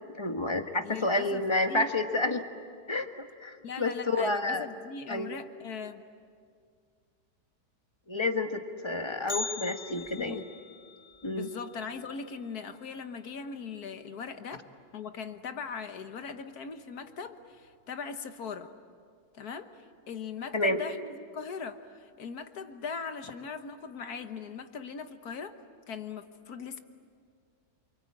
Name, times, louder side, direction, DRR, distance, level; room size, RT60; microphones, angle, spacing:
voice 1, 0.1-2.4 2.9-3.1 3.4-4.6 5.1-5.3 8.1-10.4 11.2-11.5 20.5-20.8, left 2 dB, 20° left, 6 dB, 1.3 m, -29 dB
voice 2, 0.8-1.9 3.6-6.0 9.9-10.5 11.3-14.7 14.9-18.7 19.3-25.6 25.9-26.8, left 5 dB, 70° left, 8 dB, 1.8 m, -40 dB
Bell, 9.3-13.4 13.6-13.7 14.2-14.3 15.1-15.2 16.0-16.3 16.6-16.7, left 4 dB, 35° left, 2.2 m, -42 dB
28.5 x 24.5 x 8.7 m, 2.1 s
omnidirectional pair, 1.7 m